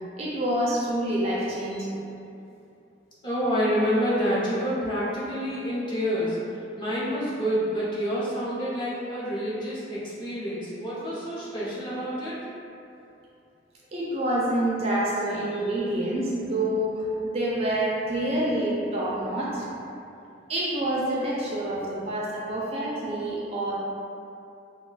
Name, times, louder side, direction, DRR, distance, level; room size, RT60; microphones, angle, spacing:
voice 1, 0.2-2.0 13.9-19.7 20.5-23.7, right 1 dB, 35° right, -6 dB, 0.4 m, -27 dB
voice 2, 3.2-12.5, equal, 25° left, -9 dB, 0.7 m, -28 dB
2.3 x 2.2 x 3.8 m, 2.7 s
head